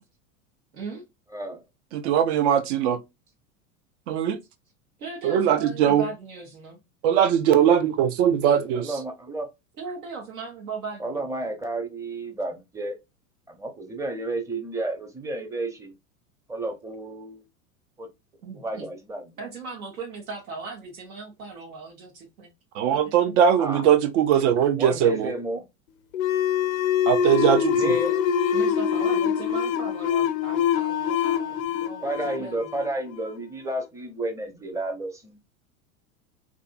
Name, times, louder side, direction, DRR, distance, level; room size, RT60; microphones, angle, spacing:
voice 1, 0.7-1.1 5.0-6.8 9.8-11.3 18.4-18.9 19.4-22.5 22.9-23.3 27.4-27.5 28.5-32.7, right 4 dB, 75° right, 1.0 m, -38 dB
voice 2, 1.9-3.0 4.1-4.4 5.2-6.0 7.0-8.9 22.8-25.3 27.1-27.9, right 9 dB, 55° right, 0.6 m, -20 dB
voice 3, 8.7-9.5 11.0-13.0 13.5-15.9 16.5-17.4 18.0-18.1 18.5-19.2 23.6-23.8 24.8-25.6 27.7-28.2 32.0-35.4, right 2 dB, 5° right, 0.6 m, -31 dB
sound 1, 26.1-33.4, left 8 dB, 70° left, 0.6 m, -24 dB
2.6 x 2.5 x 2.4 m
hypercardioid pair, 85°, 43 cm